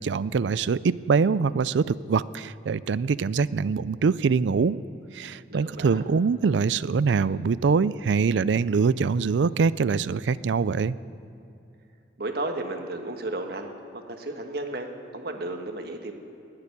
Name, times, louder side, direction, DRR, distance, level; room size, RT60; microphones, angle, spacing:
voice 1, 0.0-4.8 5.1-11.0, right 5 dB, 80° right, 17 dB, 0.4 m, -24 dB
voice 2, 5.5-6.0 12.2-16.1, right 2 dB, 60° right, 4 dB, 1.5 m, -33 dB
20.0 x 6.8 x 9.6 m, 2.7 s
head